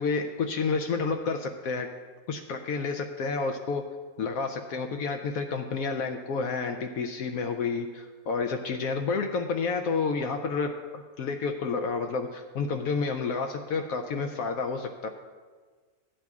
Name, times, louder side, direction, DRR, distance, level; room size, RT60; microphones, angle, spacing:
voice 1, 0.0-1.9 2.3-3.8 4.2-15.1, left 4 dB, 75° left, 5 dB, 1.1 m, -30 dB
16.0 x 10.0 x 2.4 m, 1.5 s
omnidirectional pair, 1.5 m